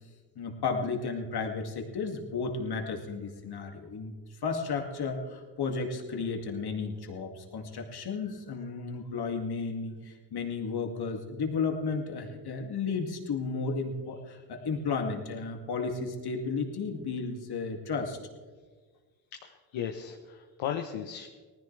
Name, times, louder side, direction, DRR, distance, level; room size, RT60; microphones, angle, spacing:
voice 1, 0.4-4.1 4.4-18.2, left 4 dB, 50° left, 3 dB, 2.4 m, -33 dB
voice 2, 19.3-21.3, left 9 dB, 65° left, 4 dB, 1.1 m, -36 dB
19.0 x 14.5 x 3.3 m, 1.4 s
hypercardioid pair, 60°, 49 cm